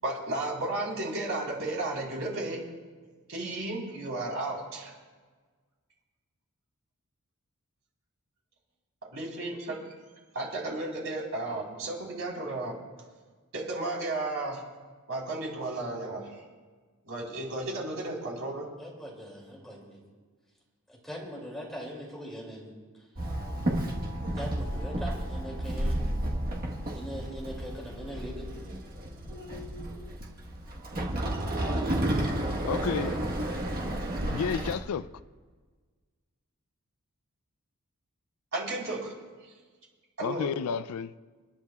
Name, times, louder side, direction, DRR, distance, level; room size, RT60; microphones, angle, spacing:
voice 1, 0.0-2.6 3.3-4.9 9.1-9.8 10.3-12.8 13.5-14.6 15.1-16.4 17.0-18.7 38.5-39.1 40.2-40.5, right 2 dB, 65° right, 3.9 m, -33 dB
voice 2, 18.8-20.0 20.9-22.7 24.3-26.0 26.9-28.5, equal, ahead, 2.6 m, -41 dB
Walk footsteps / Chatter / Hiss, 23.2-34.8, right 1 dB, 40° right, 1.3 m, -32 dB
voice 3, 32.7-33.1 34.3-35.1 40.2-41.1, left 7 dB, 75° left, 0.4 m, -31 dB
30.0 x 10.5 x 2.4 m
head